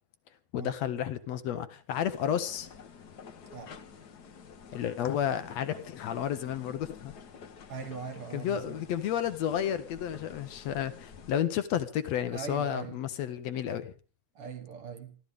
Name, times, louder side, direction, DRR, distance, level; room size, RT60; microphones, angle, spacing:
voice 1, 0.5-2.7 4.7-7.1 8.3-13.9, left 9 dB, 70° left, 2.0 m, -31 dB
sound 1, 1.9-11.4, left 6 dB, 55° left, 1.1 m, -50 dB
voice 2, 7.7-8.9 12.3-13.0 14.4-15.2, right 6 dB, 55° right, 2.0 m, -41 dB
28.0 x 12.0 x 3.6 m
omnidirectional pair, 3.3 m